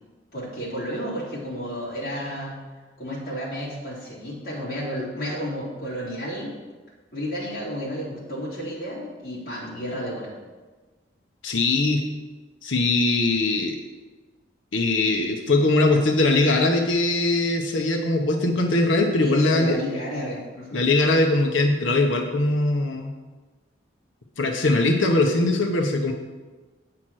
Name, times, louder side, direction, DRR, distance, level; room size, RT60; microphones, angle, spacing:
voice 1, 0.3-2.5 3.0-6.5 7.1-10.3 19.2-20.8, equal, 50° left, -7 dB, 3.4 m, -32 dB
voice 2, 11.4-12.0 12.6-13.8 14.7-19.8 20.7-23.1 24.4-26.1, left 2 dB, 85° left, 2 dB, 0.9 m, -21 dB
8.8 x 5.9 x 6.2 m, 1.3 s
head